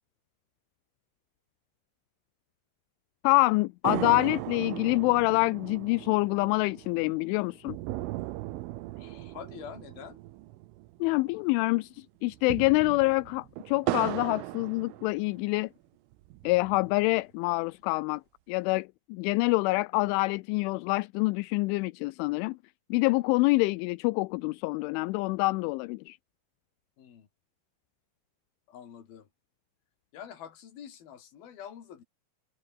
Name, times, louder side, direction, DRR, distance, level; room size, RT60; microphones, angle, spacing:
voice 1, 3.2-7.8 11.0-15.7 16.4-18.2 18.5-22.6 22.9-26.2, left 23 dB, 85° left, 2.9 m, -26 dB
sound 1, 3.9-11.5 11.7-11.8 12.3-15.6 16.1-17.1, right 17 dB, 85° right, 3.6 m, -37 dB
voice 2, 9.0-10.2 27.0-27.3 28.7-29.3 30.1-32.0, left 9 dB, 50° left, 4.5 m, -46 dB
omnidirectional pair, 5.7 m